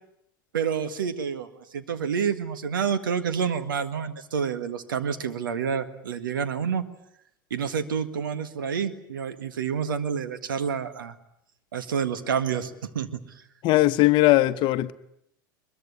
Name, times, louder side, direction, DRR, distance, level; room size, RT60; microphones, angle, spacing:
voice 1, 0.5-1.5 1.7-6.8 7.5-11.1 11.7-13.1, right 7 dB, 75° right, 1.8 m, -28 dB
voice 2, 13.6-14.9, left 17 dB, 45° left, 1.1 m, -19 dB
22.0 x 22.0 x 9.8 m
hypercardioid pair, 85°, 11 cm